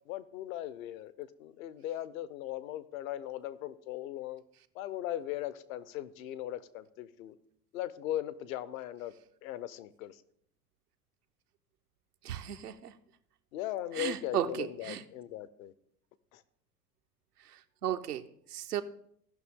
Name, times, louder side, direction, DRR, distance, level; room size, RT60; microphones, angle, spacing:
voice 1, 0.1-4.4 4.7-7.3 7.7-9.1 9.4-10.2 13.5-15.7 16.3-16.4, left 13 dB, 65° left, 0.9 m, -38 dB
voice 2, 12.2-13.0 13.9-15.0 17.4-18.8, right 10 dB, 80° right, 0.9 m, -35 dB
16.5 x 6.0 x 3.7 m
hypercardioid pair, 80°, 45 cm